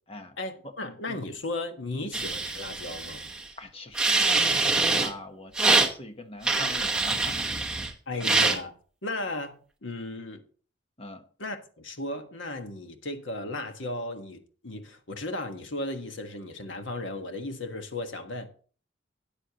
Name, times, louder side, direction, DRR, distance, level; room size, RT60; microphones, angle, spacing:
voice 1, 0.4-3.3 8.1-8.8 9.0-10.4 11.4-18.5, left 2 dB, 85° left, 1.4 m, -35 dB
sound 1, 2.1-3.4 3.9-5.1 5.5-5.9 6.4-7.9 8.2-8.6, right 3 dB, 5° right, 1.0 m, -24 dB
voice 2, 3.6-7.9 8.1-8.2 11.0-11.2, left 2 dB, 30° left, 1.1 m, -43 dB
13.0 x 9.1 x 2.9 m
head